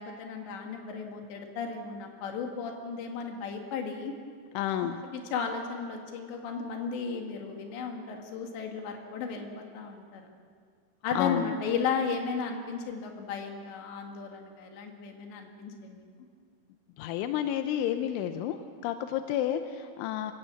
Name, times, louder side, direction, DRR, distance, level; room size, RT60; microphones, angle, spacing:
voice 1, 0.0-4.1 5.1-10.3 11.0-16.0, left 5 dB, 70° left, 3 dB, 4.1 m, -34 dB
voice 2, 4.5-5.0 11.2-11.5 17.0-18.6 18.8-20.3, left 11 dB, 90° left, 8 dB, 3.2 m, -30 dB
27.0 x 16.5 x 7.1 m, 2.1 s
omnidirectional pair, 5.5 m